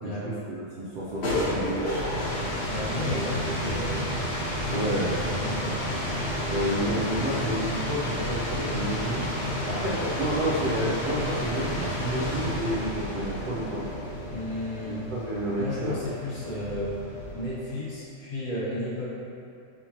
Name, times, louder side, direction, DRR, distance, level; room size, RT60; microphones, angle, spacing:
voice 1, 0.0-2.5 4.7-5.3 6.5-9.2 9.7-13.9 14.9-15.9, right 1 dB, 60° right, -7 dB, 0.5 m, -30 dB
sound 1, 0.9-17.6, left 1 dB, 60° left, 1.1 m, -31 dB
voice 2, 2.7-4.1 4.9-5.8 9.7-9.9 14.3-15.0 15.6-16.9 17.3-19.1, left 1 dB, 80° left, -9 dB, 1.6 m, -33 dB
5.4 x 2.8 x 2.8 m, 2.5 s
omnidirectional pair, 1.3 m